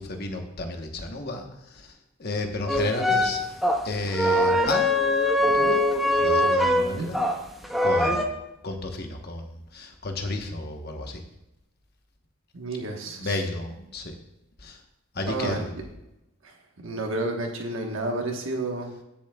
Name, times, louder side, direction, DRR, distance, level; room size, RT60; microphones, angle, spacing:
voice 1, 0.0-3.4 3.8-5.0 5.3-5.8 6.1-7.2 7.8-8.3 8.6-11.2 13.1-14.1 14.6-14.8 15.1-15.7, left 2 dB, 45° left, 4 dB, 1.1 m, -32 dB
sound 1, 2.7-7.4 7.6-8.2, left 1 dB, ahead, 0.8 m, -22 dB
voice 2, 12.5-13.4 15.3-15.6 16.4-16.5 16.8-18.9, right 2 dB, 60° right, 1 dB, 1.3 m, -30 dB
18.0 x 7.1 x 2.3 m, 0.90 s
head